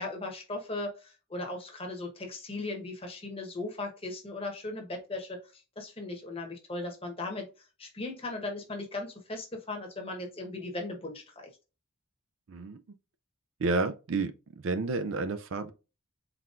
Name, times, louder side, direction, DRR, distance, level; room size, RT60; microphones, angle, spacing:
voice 1, 0.0-11.5, left 2 dB, 25° left, 1.1 m, -38 dB
voice 2, 12.5-12.8 13.6-14.3 14.6-15.7, right 3 dB, 60° right, 0.4 m, -30 dB
4.3 x 3.9 x 2.4 m
head